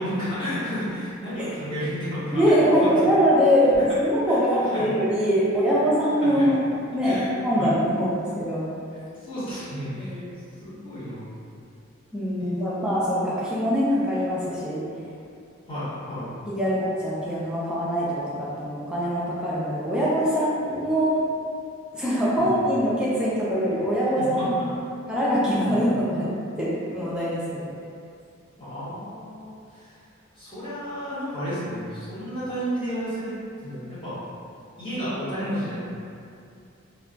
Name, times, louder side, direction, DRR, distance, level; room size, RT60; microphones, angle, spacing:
voice 1, 0.0-2.5 2.8-2.9 4.3-4.8 5.5-5.8 6.2-6.5 7.0-7.7 9.1-10.2 10.6-11.3 12.4-12.8 15.7-16.3 22.4-22.5 24.2-24.5 25.7-25.8 28.6-29.9 30.3-33.3 33.6-34.2 34.8-35.8, equal, 25° left, -12 dB, 1.0 m, -32 dB
voice 2, 2.3-6.6 6.9-7.2 7.4-8.7 10.0-10.2 12.1-14.8 16.5-21.2 21.9-24.6 25.1-26.3 26.6-27.6, equal, 5° right, -9 dB, 0.3 m, -23 dB
2.2 x 2.2 x 3.7 m, 2.4 s
head